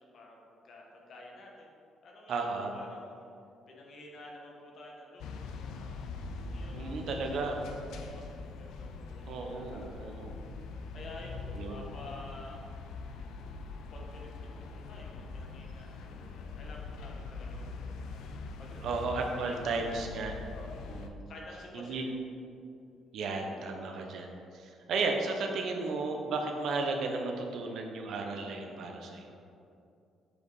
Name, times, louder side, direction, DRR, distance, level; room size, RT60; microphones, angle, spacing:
voice 1, 0.0-3.3 3.7-10.1 10.9-12.6 13.9-18.3 18.6-19.8 20.5-20.9 21.3-22.0, left 1 dB, 45° left, -1 dB, 1.3 m, -51 dB
voice 2, 2.3-2.8 6.7-7.6 9.3-10.4 11.5-11.8 18.8-20.3 20.9-21.3 21.7-22.1 23.1-24.3 24.5-29.3, right 3 dB, 60° right, 2 dB, 0.9 m, -34 dB
sound 1, 5.2-21.1, left 4 dB, 80° left, 0.5 m, -43 dB
7.6 x 5.0 x 4.8 m, 2.5 s
cardioid pair, 165°, 0 cm